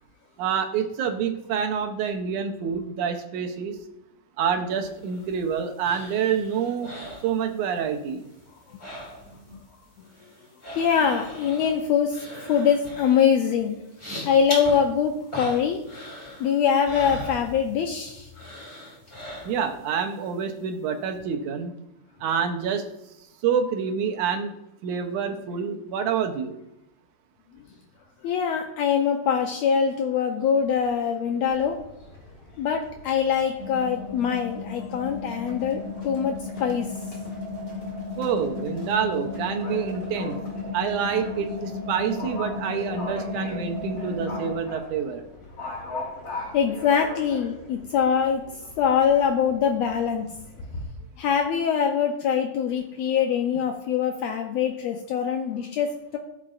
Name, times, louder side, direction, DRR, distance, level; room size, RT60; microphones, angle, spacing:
voice 1, 0.4-3.8 4.4-6.9 7.2-8.2 19.5-21.7 22.2-22.9 23.4-24.5 24.8-26.5 38.2-40.4 40.7-45.2, right 7 dB, 75° right, 6 dB, 2.2 m, -27 dB
sound 1, 4.9-7.9 8.2-9.6 9.8-18.0 18.3-19.9 20.3-20.4, left 1 dB, 10° left, 2.3 m, -40 dB
voice 2, 10.8-13.8 14.3-15.8 16.4-18.3 28.2-31.8 32.6-36.9 46.5-50.3 51.2-56.2, left 7 dB, 85° left, 3 dB, 1.5 m, -23 dB
Livestock farm animals working animals, 31.5-50.8, left 2 dB, 45° left, 2.7 m, -41 dB
sound 2, 33.6-44.5, left 3 dB, 25° left, 3.8 m, -34 dB
14.0 x 5.9 x 2.5 m, 0.89 s
omnidirectional pair, 3.7 m